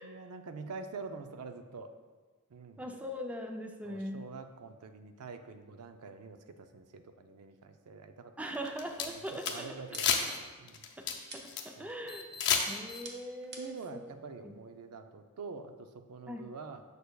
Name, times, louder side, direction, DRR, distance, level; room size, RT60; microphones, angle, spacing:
voice 1, 0.0-1.9 2.5-2.8 3.8-8.6 9.1-10.9 11.8-11.9 13.6-16.8, right 4 dB, 80° right, 8 dB, 0.5 m, -46 dB
voice 2, 2.8-4.2 8.4-9.8 10.3-10.4 11.0-11.1 11.3-12.3 12.7-14.0 14.4-14.5 16.3-16.5, equal, 5° right, 3 dB, 0.4 m, -41 dB
sound 1, 8.5-9.5 9.9-10.4 10.7-11.6 12.1-13.0, left 7 dB, 55° left, 0.6 m, -31 dB
sound 2, 9.5-10.4 11.3-11.7 12.6-13.9, right 3 dB, 50° right, 0.7 m, -48 dB
6.7 x 6.5 x 2.3 m, 1.4 s
head